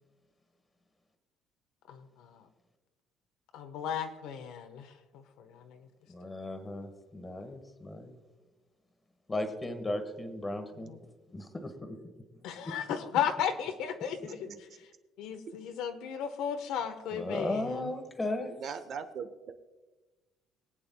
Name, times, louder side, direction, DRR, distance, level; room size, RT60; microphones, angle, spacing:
voice 1, 1.9-2.4 3.5-5.8 10.7-11.0 12.4-14.5 15.2-17.9, left 8 dB, 85° left, 7 dB, 1.0 m, -35 dB
voice 2, 6.1-8.1 9.3-11.0 11.3-11.9 12.6-12.7 17.1-18.5, left 1 dB, 15° left, 7 dB, 1.1 m, -36 dB
voice 3, 14.1-14.6 18.5-19.5, right 6 dB, 50° right, 9 dB, 0.8 m, -41 dB
23.0 x 8.9 x 2.2 m, 1.2 s
cardioid pair, 160°, 0 cm